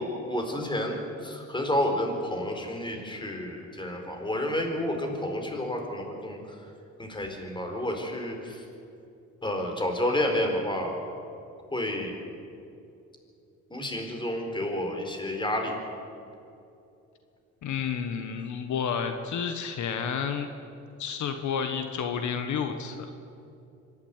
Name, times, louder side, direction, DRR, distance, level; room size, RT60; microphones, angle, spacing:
voice 1, 0.0-6.7 7.0-8.6 9.4-11.0 11.7-12.1 13.7-15.8, left 1 dB, 15° left, 3 dB, 4.3 m, -30 dB
voice 2, 17.6-20.5 21.0-23.1, left 7 dB, 70° left, 7 dB, 1.4 m, -30 dB
25.5 x 11.5 x 9.7 m, 2.7 s
cardioid pair, 90°, 30 cm